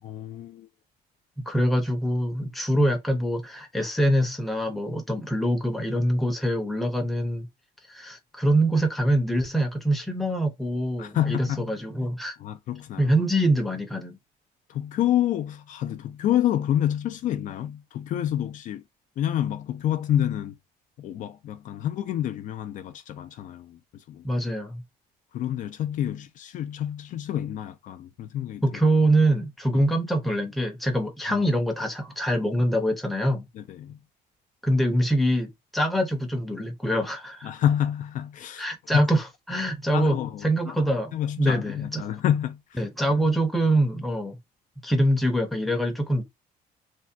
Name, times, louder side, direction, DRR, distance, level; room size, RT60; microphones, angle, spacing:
voice 1, 0.0-0.7 11.0-11.8 12.4-13.2 14.7-18.8 19.2-20.6 21.0-24.3 25.3-28.8 29.7-29.8 31.3-31.5 33.5-34.0 37.4-38.7 38.9-39.1 39.9-40.8 41.1-42.8 43.1-43.2, left 11 dB, 50° left, 0.4 m, -28 dB
voice 2, 1.5-7.5 7.9-12.4 13.0-14.2 24.2-24.8 28.6-33.4 34.6-37.5 38.6-40.2 40.4-42.1 42.8-44.4 44.8-46.2, right 1 dB, ahead, 0.6 m, -24 dB
3.3 x 2.1 x 2.6 m
cardioid pair, 155°, 16 cm